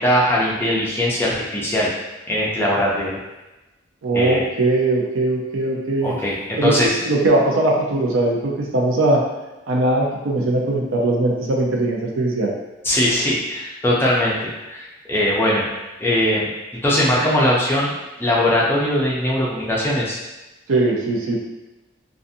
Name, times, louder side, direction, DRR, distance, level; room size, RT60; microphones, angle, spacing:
voice 1, 0.0-1.9 2.3-3.2 4.1-4.4 6.0-7.0 12.8-15.7 16.0-16.5 16.8-17.9 18.2-20.2, left 1 dB, 10° left, -5 dB, 0.4 m, -20 dB
voice 2, 4.0-6.1 6.6-9.2 9.7-12.5 20.7-21.4, right 2 dB, 85° right, -1 dB, 0.5 m, -20 dB
2.5 x 2.4 x 2.6 m, 1.0 s
head